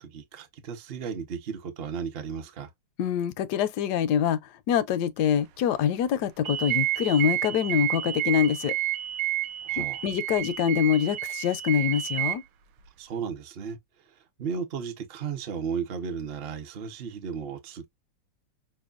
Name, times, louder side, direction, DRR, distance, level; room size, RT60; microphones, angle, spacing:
voice 1, 0.0-2.7 9.6-10.0 13.0-13.8 14.4-17.9, right 6 dB, 55° right, 0.6 m, -34 dB
voice 2, 3.0-4.4 4.7-8.7 9.8-12.4, left 9 dB, 75° left, 1.0 m, -25 dB
sound 1, 6.4-12.3, right 14 dB, 75° right, 1.2 m, -30 dB
6.0 x 2.2 x 2.4 m
omnidirectional pair, 2.0 m